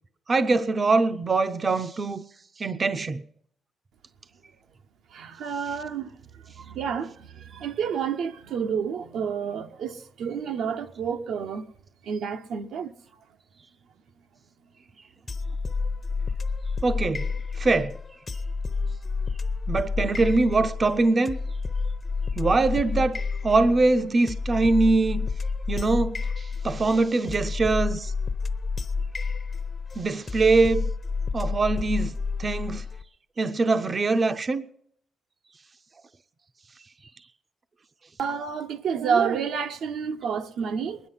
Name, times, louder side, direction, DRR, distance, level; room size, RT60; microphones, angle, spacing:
voice 1, 0.3-2.2 2.6-3.2 16.8-17.3 17.5-18.0 19.7-21.4 22.4-25.3 25.7-28.1 30.0-30.9 31.3-32.8 33.4-34.7, right 3 dB, 35° right, 0.6 m, -23 dB
voice 2, 5.1-11.6 12.0-12.9 38.2-41.0, right 6 dB, 75° right, 0.8 m, -29 dB
sound 1, 15.3-33.0, left 4 dB, 35° left, 0.8 m, -30 dB
20.5 x 10.0 x 5.6 m
cardioid pair, 90°, 0 cm